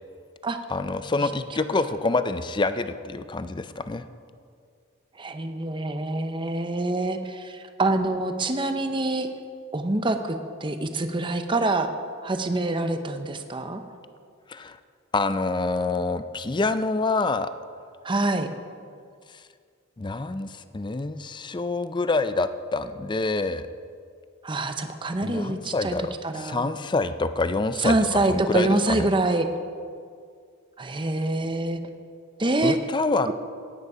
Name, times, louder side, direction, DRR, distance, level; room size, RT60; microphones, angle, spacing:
voice 1, 0.7-4.0 14.5-14.8 15.1-17.5 20.0-23.7 25.2-28.0 28.3-29.1 32.6-33.3, left 3 dB, 20° left, 11 dB, 0.4 m, -26 dB
voice 2, 5.2-9.3 9.7-10.4 10.6-11.9 12.2-13.8 18.0-18.5 24.4-25.9 26.2-26.7 27.8-29.5 30.8-31.8 32.4-32.8, right 2 dB, 25° right, 7 dB, 0.8 m, -25 dB
16.5 x 9.6 x 5.0 m, 2.2 s
head